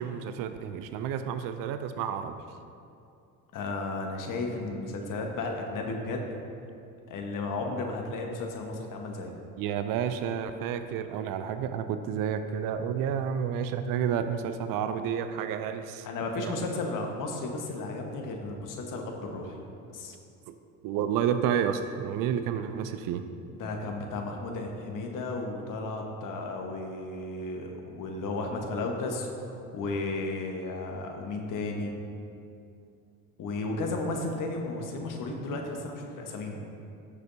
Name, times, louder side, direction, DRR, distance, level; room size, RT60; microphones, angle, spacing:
voice 1, 0.0-2.4 9.6-16.1 16.4-16.5 20.5-20.6 20.8-23.2, right 8 dB, 50° right, 10 dB, 0.6 m, -30 dB
voice 2, 3.5-6.4 7.1-9.3 16.0-19.6 19.9-20.1 23.5-32.0 33.4-36.7, left 2 dB, 45° left, 2 dB, 1.4 m, -34 dB
14.5 x 6.6 x 2.8 m, 2.6 s
hypercardioid pair, 65°, 42 cm